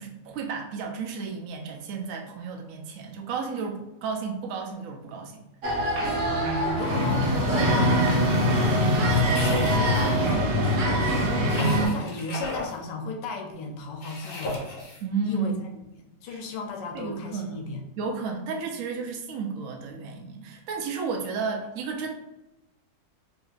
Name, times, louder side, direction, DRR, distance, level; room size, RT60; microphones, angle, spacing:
voice 1, 0.0-5.4 15.0-15.6 16.3-16.4 16.9-17.6 18.0-22.1, right 5 dB, 70° right, 2 dB, 0.8 m, -32 dB
sound 1, 5.6-11.9, equal, 85° right, 1.4 m, -23 dB
voice 2, 6.3-14.6 15.2-15.5 16.0-17.8, left 2 dB, 80° left, 3 dB, 1.2 m, -35 dB
sound 2, 9.3-10.3 11.4-12.7 14.0-15.0, left 2 dB, 50° left, 0.7 m, -36 dB
3.9 x 2.7 x 2.4 m, 0.91 s
omnidirectional pair, 1.9 m